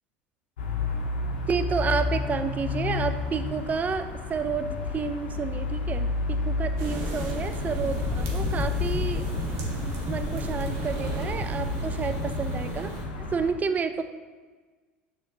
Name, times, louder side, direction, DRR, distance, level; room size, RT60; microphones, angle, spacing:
sound 1, 0.6-13.5, left 4 dB, 85° left, 0.6 m, -31 dB
voice 1, 1.5-9.2 10.1-12.9 13.3-14.0, right 5 dB, 30° right, 9 dB, 0.3 m, -30 dB
sound 2, 6.8-13.0, right 1 dB, 55° right, 1.0 m, -32 dB
6.3 x 2.8 x 2.6 m, 1.4 s
hypercardioid pair, 80°, 6 cm